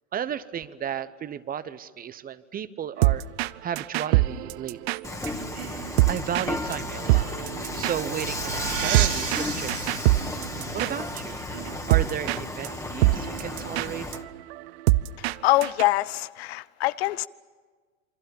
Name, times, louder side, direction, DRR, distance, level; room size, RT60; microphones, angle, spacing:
voice 1, 0.1-3.2 3.6-4.8 5.9-7.3 7.7-10.1 10.7-11.4 11.9-14.1, right 9 dB, 20° right, 0.9 m, -33 dB
sound 1, 3.0-3.5 3.8-6.5 6.7-6.8 7.1-11.2 11.5-12.4 12.6-12.8 13.0-15.3 15.6-15.8, right 18 dB, 50° right, 0.7 m, -24 dB
Dishes pots and pans / Frying (food), 5.0-14.2, left 2 dB, 10° left, 1.8 m, -34 dB
sound 2, 7.4-12.3, right 9 dB, 70° right, 3.1 m, -34 dB
voice 2, 15.4-17.3, left 17 dB, 50° left, 0.7 m, -24 dB
28.0 x 25.0 x 7.1 m
figure-of-eight pair, 95°, 40 cm